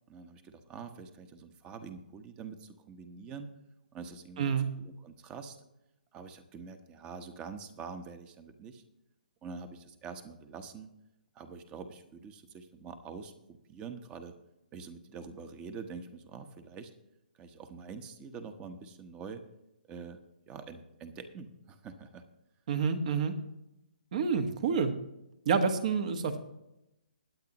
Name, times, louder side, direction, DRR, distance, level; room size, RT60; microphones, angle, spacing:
voice 1, 0.1-3.5 3.9-5.6 6.1-8.8 9.4-10.9 11.3-14.3 14.7-16.9 17.3-19.4 19.9-20.2 20.5-22.2, right 5 dB, 20° right, 9 dB, 1.0 m, -45 dB
voice 2, 4.4-4.7 22.7-23.3 24.1-24.9 25.4-26.4, right 6 dB, 50° right, 8 dB, 1.4 m, -28 dB
21.0 x 8.5 x 3.0 m, 0.89 s
figure-of-eight pair, 135°, 5 cm